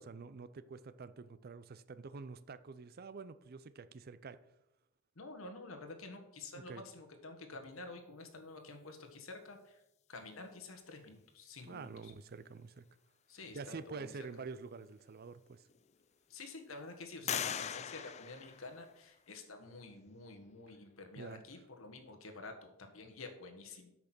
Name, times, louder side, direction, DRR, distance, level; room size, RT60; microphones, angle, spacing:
voice 1, 0.0-4.4 6.5-6.8 11.7-12.8 13.5-15.6 17.4-17.7 21.2-21.4, right 4 dB, 50° right, 0.5 m, -47 dB
voice 2, 5.1-9.8 10.1-12.1 13.3-14.3 16.3-23.9, left 3 dB, 80° left, 1.5 m, -49 dB
sound 1, 15.0-15.1 15.7-16.3 17.3-19.2, left 9 dB, 35° left, 0.4 m, -41 dB
8.7 x 6.0 x 6.1 m
head